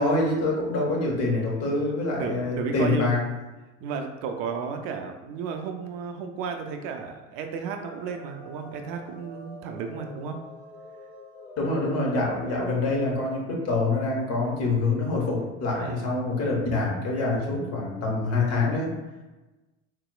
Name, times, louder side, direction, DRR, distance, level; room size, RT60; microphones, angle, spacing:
voice 1, 0.0-3.2 11.6-18.9, left 2 dB, 40° left, -2 dB, 1.0 m, -25 dB
voice 2, 1.6-3.1 3.8-10.4 15.8-16.1, right 5 dB, 50° right, 5 dB, 0.5 m, -33 dB
sound 1, 7.8-13.4, left 1 dB, 25° left, 0.7 m, -45 dB
4.1 x 2.0 x 2.4 m, 1.1 s
figure-of-eight pair, 75°, 39 cm